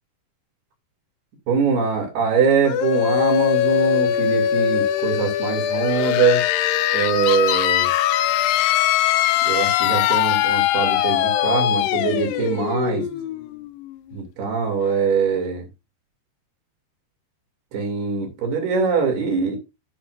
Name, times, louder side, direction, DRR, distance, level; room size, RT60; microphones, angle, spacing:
voice 1, 1.5-6.4 6.9-7.9 9.5-13.1 14.1-15.7 17.7-19.6, right 5 dB, 90° right, 4.6 m, -22 dB
sound 1, 2.6-14.2, left 12 dB, 80° left, 2.3 m, -21 dB
14.0 x 6.4 x 2.5 m
omnidirectional pair, 4.4 m